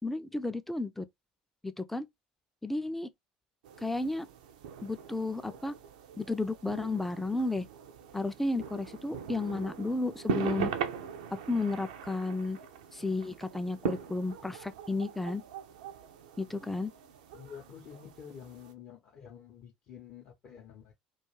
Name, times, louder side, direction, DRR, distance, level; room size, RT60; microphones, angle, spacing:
voice 1, 0.0-1.0 1.6-2.1 2.6-3.1 3.8-4.3 4.8-5.7 6.2-7.7 8.1-10.7 11.5-12.6 12.9-15.4 16.4-16.9, left 2 dB, 5° left, 0.3 m, -32 dB
sound 1, 3.6-18.7, right 7 dB, 65° right, 0.4 m, -41 dB
voice 2, 17.3-20.9, left 8 dB, 50° left, 0.6 m, -49 dB
2.3 x 2.2 x 3.0 m
figure-of-eight pair, 65°, 4 cm